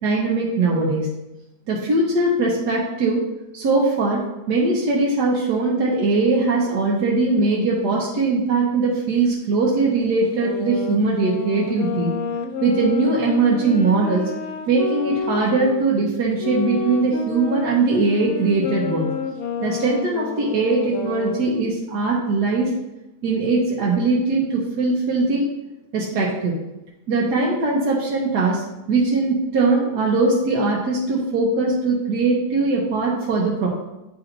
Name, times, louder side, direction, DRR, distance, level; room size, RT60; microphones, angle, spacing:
voice 1, 0.0-1.1 1.7-3.2 3.5-12.1 12.6-14.3 14.7-19.1 19.6-22.7 23.2-25.5 25.9-26.5 27.1-33.7, right 3 dB, 80° right, -4 dB, 1.6 m, -20 dB
sound 1, 10.3-15.8 16.4-21.6, left 5 dB, 60° left, 0.9 m, -29 dB
10.0 x 4.4 x 2.6 m, 0.96 s
omnidirectional pair, 1.7 m